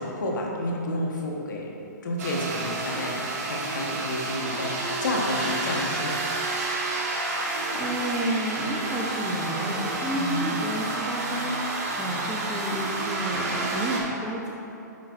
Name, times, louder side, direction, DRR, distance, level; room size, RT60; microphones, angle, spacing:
voice 1, 0.0-1.7 2.0-6.1 10.2-10.4, left 1 dB, 70° left, -1 dB, 1.4 m, -30 dB
sound 1, 2.2-14.0, right 2 dB, 45° right, 1.4 m, -30 dB
voice 2, 7.4-14.5, right 1 dB, 5° right, -4 dB, 0.8 m, -31 dB
9.4 x 6.0 x 2.6 m, 2.9 s
hypercardioid pair, 140°, 10 cm